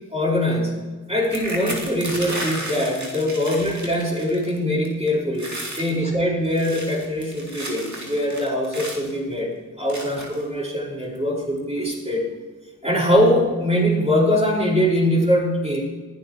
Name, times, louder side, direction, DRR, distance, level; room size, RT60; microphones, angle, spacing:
voice 1, 0.1-12.2 12.8-15.8, equal, 20° right, -5 dB, 5.1 m, -22 dB
sound 1, 1.2-4.6 4.9-5.1 5.4-5.9 6.4-9.1 9.9-10.4 11.2-11.3 11.6-11.8, right 1 dB, 60° right, 2.7 m, -33 dB
20.0 x 12.0 x 3.1 m, 1.4 s
wide cardioid pair, 40°, 31 cm